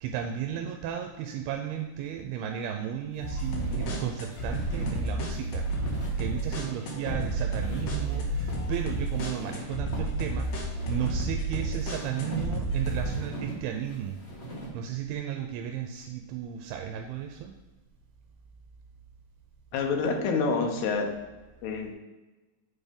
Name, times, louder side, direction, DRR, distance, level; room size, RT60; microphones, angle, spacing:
voice 1, 0.0-14.2 14.7-17.5, right 9 dB, 85° right, 4 dB, 2.5 m, -34 dB
sound 1, 3.1-14.7, right 2 dB, 45° left, 0.8 m, -41 dB
sound 2, 3.2-13.2, right 2 dB, 65° left, 1.8 m, -31 dB
voice 2, 19.7-21.1 21.6-21.9, left 4 dB, 85° left, 3 dB, 3.0 m, -27 dB
7.6 x 4.2 x 5.3 m, 1.2 s
omnidirectional pair, 4.5 m